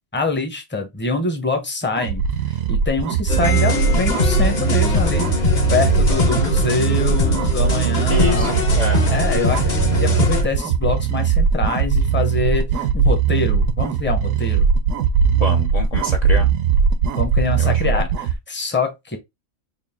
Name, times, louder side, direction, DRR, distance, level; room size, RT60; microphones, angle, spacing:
voice 1, 0.1-8.6 9.1-14.7 17.2-19.2, left 3 dB, 15° left, 0.5 m, -25 dB
sound 1, 2.0-18.4, right 6 dB, 75° right, 0.9 m, -19 dB
sound 2, 3.3-10.4, left 4 dB, 40° left, 0.7 m, -22 dB
voice 2, 8.1-8.5 8.8-9.1 15.4-16.5 17.6-18.1, left 2 dB, 70° left, 0.3 m, -26 dB
3.9 x 2.4 x 3.5 m
omnidirectional pair, 1.5 m